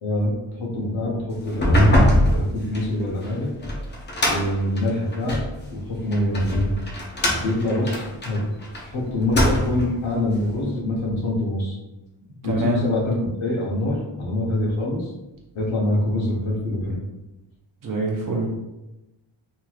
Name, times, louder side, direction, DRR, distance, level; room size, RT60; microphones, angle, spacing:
voice 1, 0.0-3.5 4.2-5.4 5.7-6.7 7.4-8.4 8.8-11.8 12.4-15.1 15.5-17.0, left 1 dB, 70° left, -2 dB, 1.0 m, -25 dB
sound 1, 1.5-5.5 6.1-8.8 9.2-10.0, equal, 25° left, 0.5 m, -22 dB
voice 2, 12.5-12.8 17.8-18.5, right 3 dB, 40° right, -1 dB, 0.7 m, -24 dB
3.1 x 3.0 x 2.3 m, 0.99 s
wide cardioid pair, 130°, 49 cm